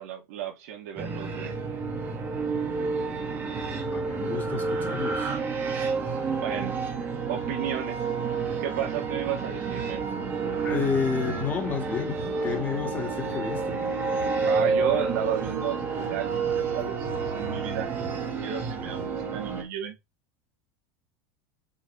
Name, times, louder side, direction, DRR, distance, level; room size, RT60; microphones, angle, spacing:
voice 1, 0.0-1.6 6.4-6.8 7.3-8.1 8.6-10.0 14.4-17.9 18.4-20.0, right 9 dB, 80° right, 3.1 m, -33 dB
sound 1, 1.0-19.6, right 4 dB, 25° right, 2.0 m, -30 dB
voice 2, 3.3-3.6 3.9-5.3 10.6-13.8, left 6 dB, 20° left, 2.2 m, -31 dB
7.1 x 5.2 x 3.4 m
supercardioid pair, 155°, 8 cm